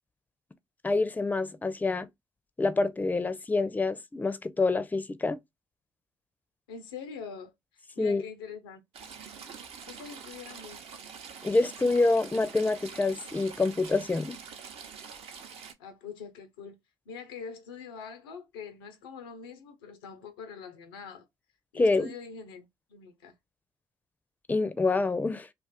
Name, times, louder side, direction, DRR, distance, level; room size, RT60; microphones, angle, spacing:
voice 1, 0.8-2.1 2.6-5.4 8.0-8.2 11.4-14.4 21.7-22.1 24.5-25.5, left 3 dB, 15° left, 0.5 m, -26 dB
voice 2, 6.7-7.5 8.0-8.8 9.9-10.8 15.8-16.8 17.1-21.3 21.7-23.3, left 6 dB, 85° left, 0.5 m, -43 dB
Stream / Trickle dribble, 8.9-15.7, right 6 dB, 55° right, 0.6 m, -45 dB
2.5 x 2.4 x 3.5 m
hypercardioid pair, 50°, 12 cm